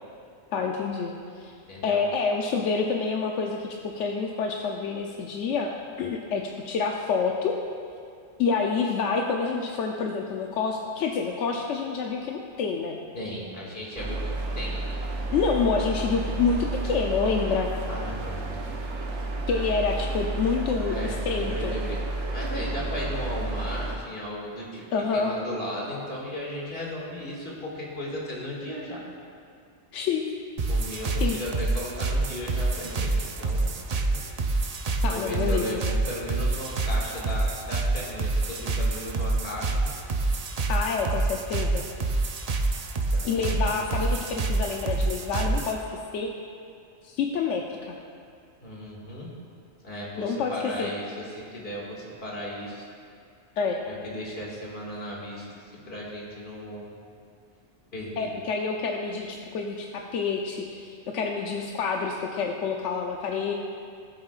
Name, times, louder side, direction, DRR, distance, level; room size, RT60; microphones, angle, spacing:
voice 1, 0.5-1.5 1.8-5.7 6.0-7.6 8.4-13.0 15.3-17.7 19.5-21.7 24.9-25.3 29.9-30.3 31.2-31.4 35.0-35.8 40.7-41.8 43.2-46.3 47.0-48.0 50.2-50.9 53.6-53.8 58.2-63.5, left 5 dB, 90° left, 1 dB, 1.0 m, -28 dB
voice 2, 1.7-2.0 13.1-14.2 14.5-14.8 17.9-18.6 20.9-22.0 22.3-24.9 25.1-29.0 30.7-33.7 35.0-39.8 43.1-44.2 48.6-49.3 49.8-52.8 53.8-56.9 57.9-58.3, equal, 55° left, -4 dB, 2.3 m, -36 dB
sound 1, 13.9-24.0, right 2 dB, 75° right, 1.2 m, -31 dB
sound 2, 30.6-45.8, right 2 dB, 45° right, 0.5 m, -27 dB
18.0 x 7.5 x 2.4 m, 2.4 s
omnidirectional pair, 1.2 m